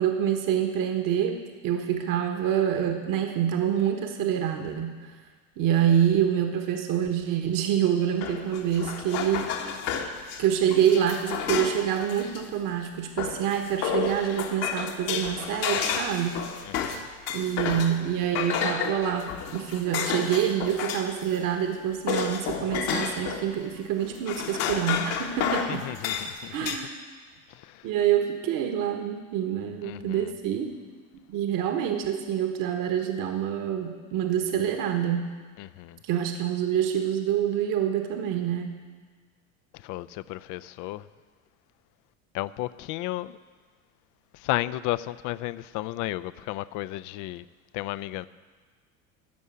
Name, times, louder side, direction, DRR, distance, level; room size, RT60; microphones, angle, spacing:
voice 1, 0.0-5.1 5.6-9.5 10.4-16.4 17.3-25.8 26.5-26.9 27.8-30.8 31.3-35.3 36.0-38.7, right 9 dB, 50° right, 1.4 m, -26 dB
sound 1, 8.2-12.4 13.2-18.1 18.4-21.3 21.5-23.5 24.0-26.8, left 7 dB, 65° left, 1.5 m, -31 dB
voice 2, 16.6-17.0 25.7-26.8 27.5-27.8 29.8-30.3 35.6-36.0 39.8-41.0 42.3-43.3 44.3-47.5 47.7-48.3, left 16 dB, 50° left, 0.5 m, -33 dB
14.0 x 5.5 x 9.4 m
hypercardioid pair, 85°, 42 cm